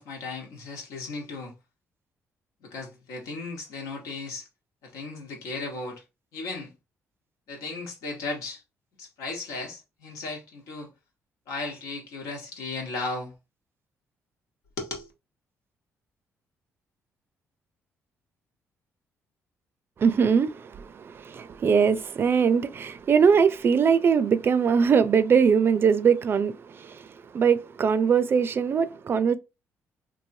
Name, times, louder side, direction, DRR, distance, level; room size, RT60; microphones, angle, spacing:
voice 1, 0.0-1.5 2.6-4.5 4.8-6.0 6.3-6.7 7.5-8.6 9.0-10.9 11.5-13.3 14.8-15.1, left 3 dB, 90° left, 1.3 m, -36 dB
voice 2, 20.0-29.4, right 6 dB, 45° right, 0.4 m, -22 dB
3.1 x 2.6 x 2.6 m
cardioid pair, 90°, 6 cm